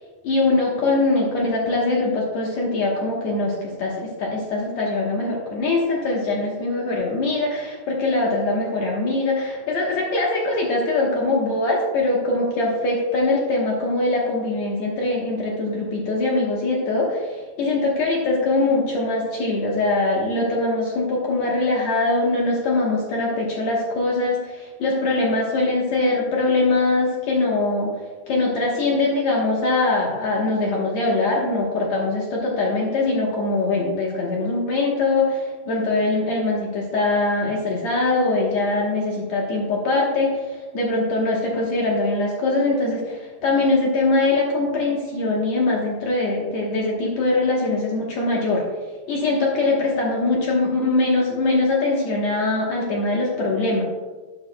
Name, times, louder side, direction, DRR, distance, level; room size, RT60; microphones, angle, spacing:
voice 1, 0.2-27.9 28.3-48.6 49.1-53.8, left 2 dB, 70° left, -3 dB, 1.7 m, -22 dB
11.5 x 9.6 x 2.2 m, 1.3 s
omnidirectional pair, 4.9 m